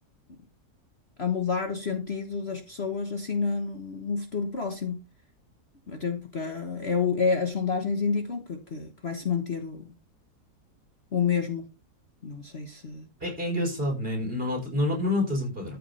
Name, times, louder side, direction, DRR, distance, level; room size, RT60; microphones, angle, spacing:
voice 1, 1.2-5.0 5.9-9.9 11.1-11.7 12.2-13.1, left 5 dB, 40° left, 1.4 m, -29 dB
voice 2, 13.2-15.8, left 1 dB, 35° right, 5.7 m, -28 dB
13.5 x 6.4 x 4.2 m
omnidirectional pair, 1.7 m